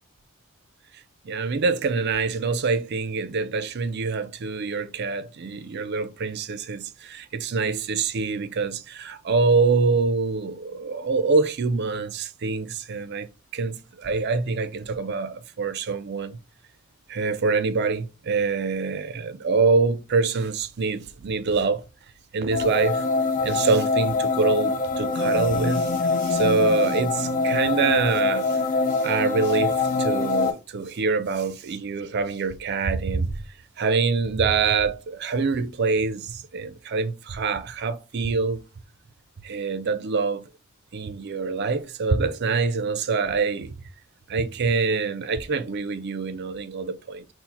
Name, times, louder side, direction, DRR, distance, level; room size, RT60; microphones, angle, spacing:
voice 1, 1.2-13.3 13.5-16.4 17.1-21.8 22.3-23.0 23.4-28.6 29.0-33.4 33.8-38.6 39.4-40.5 40.9-43.8 44.3-47.3, right 4 dB, 55° right, 0.5 m, -25 dB
sound 1, 22.5-30.5, left 3 dB, 40° left, 0.5 m, -24 dB
4.3 x 2.1 x 4.1 m
head